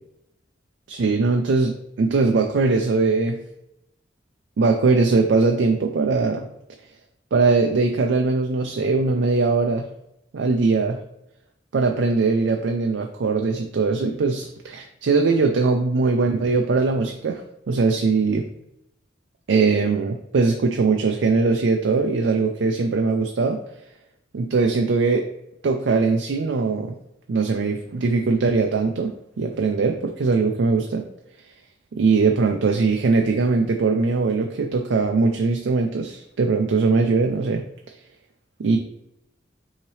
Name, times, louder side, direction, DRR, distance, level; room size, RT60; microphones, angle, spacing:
voice 1, 0.9-3.4 4.6-6.5 7.3-9.9 10.3-11.0 11.7-18.5 19.5-23.6 24.3-25.3 25.6-26.9 27.3-29.1 29.4-31.0 31.9-37.6 38.6-38.8, right 4 dB, 85° right, 4 dB, 0.4 m, -21 dB
5.6 x 2.8 x 3.1 m, 0.83 s
head